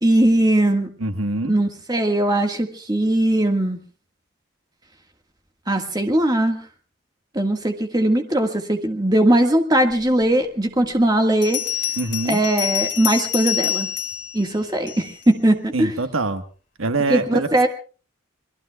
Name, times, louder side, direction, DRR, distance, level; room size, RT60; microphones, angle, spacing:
voice 1, 0.0-0.9 1.5-3.8 5.7-6.6 7.3-11.6 12.3-13.9 14.3-15.9 17.1-17.7, right 1 dB, 20° right, 4 dB, 1.7 m, -19 dB
voice 2, 1.0-1.5 12.0-12.4 15.7-16.4 16.8-17.7, right 2 dB, 85° right, 8 dB, 1.4 m, -24 dB
Bell, 10.2-10.3 11.4-15.3, left 11 dB, 60° left, 3.0 m, -27 dB
28.0 x 21.5 x 2.3 m, 0.38 s
head